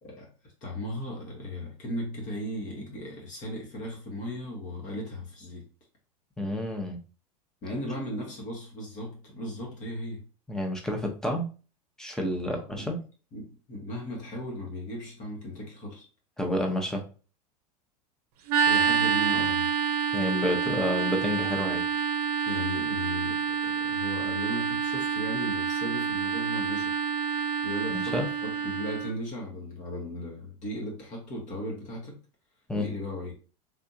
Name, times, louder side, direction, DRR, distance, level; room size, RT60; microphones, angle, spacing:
voice 1, 0.0-5.7 7.6-10.2 12.5-13.0 13.3-16.1 18.6-19.7 22.5-26.9 27.6-32.2 32.7-33.3, left 1 dB, 35° left, 1.1 m, -37 dB
voice 2, 6.4-7.0 10.5-11.5 12.0-13.0 16.4-17.0 20.1-21.8 27.9-28.3 32.7-32.9, left 1 dB, 5° left, 0.8 m, -29 dB
sound 1, 18.5-29.1, right 6 dB, 65° right, 0.6 m, -28 dB
3.4 x 2.6 x 2.7 m
hypercardioid pair, 90°, 21 cm